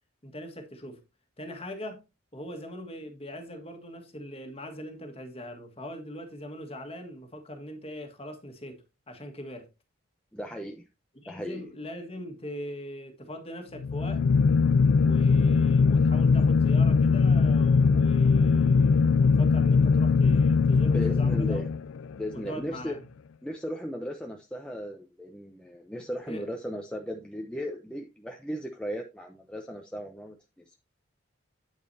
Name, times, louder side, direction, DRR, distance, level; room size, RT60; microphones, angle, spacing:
voice 1, 0.2-1.0 1.4-2.0 2.3-9.7 11.2-14.3 15.0-21.6 22.3-23.0 26.3-26.4, equal, 30° left, 1.7 m, -41 dB
voice 2, 10.3-10.9 11.3-11.6 20.9-21.7 22.2-23.0 23.4-30.4 30.7-30.8, equal, 5° left, 0.7 m, -36 dB
sound 1, 13.8-22.1, left 5 dB, 85° left, 0.4 m, -21 dB
9.1 x 8.3 x 2.8 m
head